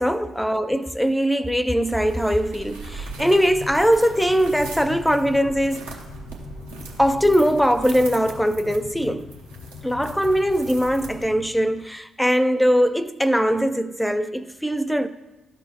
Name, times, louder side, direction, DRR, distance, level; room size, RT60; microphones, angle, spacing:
voice 1, 0.0-6.0 7.0-9.3 9.8-15.1, equal, ahead, 0.4 m, -21 dB
sound 1, 1.7-11.5, right 4 dB, 80° right, 0.9 m, -40 dB
Train, 3.1-11.9, left 6 dB, 65° left, 0.4 m, -41 dB
12.5 x 4.4 x 2.9 m
figure-of-eight pair, 40°, 0 cm